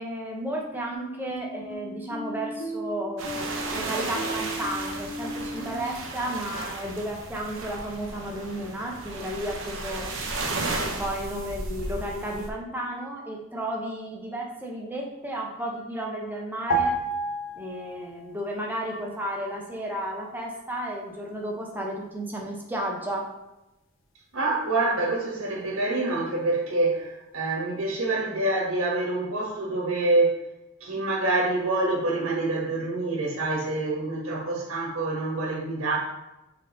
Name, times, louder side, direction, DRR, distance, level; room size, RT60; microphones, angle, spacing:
voice 1, 0.0-10.1 10.8-16.9 17.6-23.2, right 1 dB, 10° right, -1 dB, 1.0 m, -33 dB
sound 1, 0.9-6.0, right 1 dB, 80° left, 1.2 m, -37 dB
sound 2, 3.2-12.5, right 2 dB, 60° right, 0.9 m, -34 dB
sound 3, 16.7-18.3 18.6-18.8, right 2 dB, 60° left, 0.7 m, -28 dB
voice 2, 24.3-30.4 30.8-36.0, right 2 dB, 80° right, -3 dB, 1.5 m, -26 dB
6.3 x 4.0 x 3.9 m, 0.94 s
head